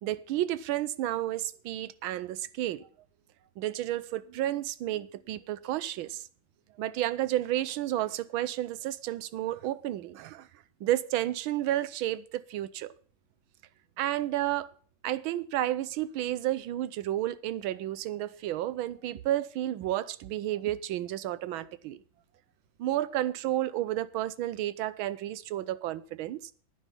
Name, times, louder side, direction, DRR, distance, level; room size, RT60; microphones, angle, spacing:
voice 1, 0.0-2.8 3.6-6.3 6.8-10.5 10.8-12.9 14.0-14.7 15.0-22.0 22.8-26.5, right 13 dB, 85° right, 1.5 m, -31 dB
10.0 x 9.4 x 5.5 m
omnidirectional pair, 2.2 m